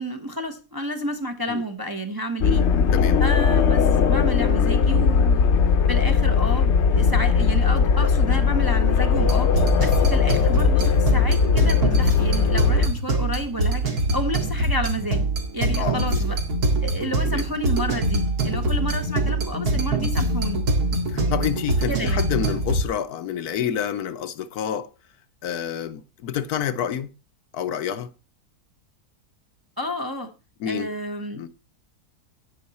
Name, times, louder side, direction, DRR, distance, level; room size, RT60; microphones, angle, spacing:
voice 1, 0.0-2.6 3.2-5.5 5.9-9.6 9.8-15.2 15.5-16.4 16.8-20.7 21.9-22.3 29.8-30.3 30.7-31.5, equal, 20° right, 0.7 m, -30 dB
sound 1, 2.4-12.9, left 6 dB, 55° left, 1.0 m, -19 dB
sound 2, 9.1-22.8, right 2 dB, 80° right, 2.5 m, -24 dB
voice 2, 15.8-16.2 17.2-17.4 21.1-24.9 25.4-27.1 27.5-28.1 30.6-30.9 31.3-31.5, left 9 dB, 80° left, 1.3 m, -28 dB
10.5 x 8.9 x 4.1 m
omnidirectional pair, 1.6 m